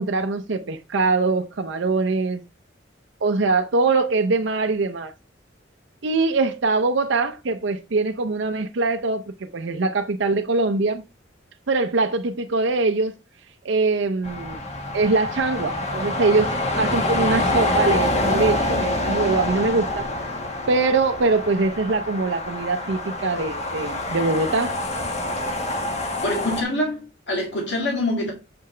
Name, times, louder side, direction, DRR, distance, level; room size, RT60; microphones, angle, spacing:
voice 1, 0.0-2.4 3.2-5.1 6.0-9.2 9.5-11.0 11.7-13.2 13.6-14.6 14.9-20.1 20.7-24.8, right 3 dB, 75° right, 0.6 m, -22 dB
sound 1, 14.2-26.6, left 1 dB, 35° left, 1.5 m, -26 dB
voice 2, 26.2-28.3, left 1 dB, 65° left, 1.9 m, -25 dB
7.6 x 5.7 x 3.2 m
head